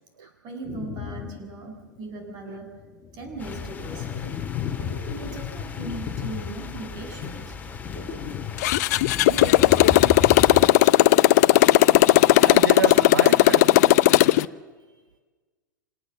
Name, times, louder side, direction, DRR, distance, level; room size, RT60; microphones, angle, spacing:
voice 1, 0.2-2.8 3.1-4.2 4.9-7.6 10.5-10.9 12.7-14.0, right 2 dB, 40° right, 6.7 m, -38 dB
sound 1, 0.6-1.5 2.0-2.1 2.7-10.6, left 7 dB, 35° left, 1.4 m, -34 dB
sound 2, 3.4-10.5, left 4 dB, 15° left, 2.4 m, -40 dB
voice 2, 4.8-5.3 7.9-8.4 9.3-10.1 10.5-10.6 12.1-13.6, right 7 dB, 80° right, 0.7 m, -33 dB
Motorcycle, 8.6-14.5, left 16 dB, 55° left, 0.6 m, -16 dB
26.5 x 18.5 x 7.5 m
figure-of-eight pair, 95°, 11 cm